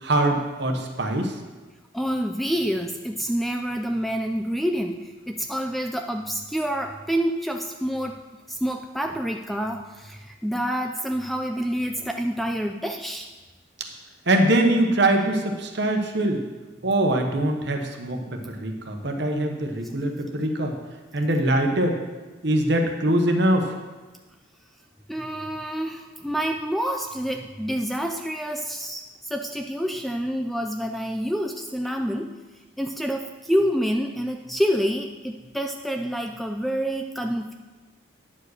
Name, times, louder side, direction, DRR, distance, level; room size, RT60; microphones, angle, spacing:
voice 1, 0.0-1.3 14.3-16.4 16.8-20.7 21.1-22.0 22.4-23.7, right 1 dB, 55° right, 3 dB, 1.1 m, -23 dB
voice 2, 1.9-8.2 8.5-13.3 25.1-32.3 32.8-37.5, equal, ahead, 4 dB, 0.3 m, -27 dB
9.8 x 4.8 x 6.4 m, 1.2 s
head